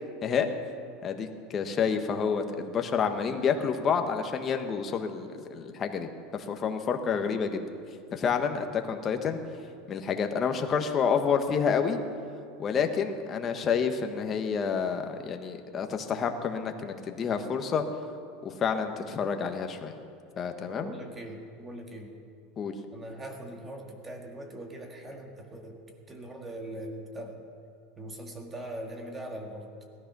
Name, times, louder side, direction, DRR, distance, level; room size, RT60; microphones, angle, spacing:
voice 1, 1.0-7.6 8.1-9.4 9.9-12.0 12.6-17.8 18.4-19.9 20.4-20.9 22.6-22.7, left 6 dB, 30° left, 6 dB, 1.3 m, -29 dB
voice 2, 20.8-22.1 22.9-25.8 26.1-27.4 28.0-29.7, right 1 dB, 15° right, 3 dB, 1.8 m, -41 dB
17.5 x 13.5 x 6.1 m, 2.5 s
supercardioid pair, 140°, 0 cm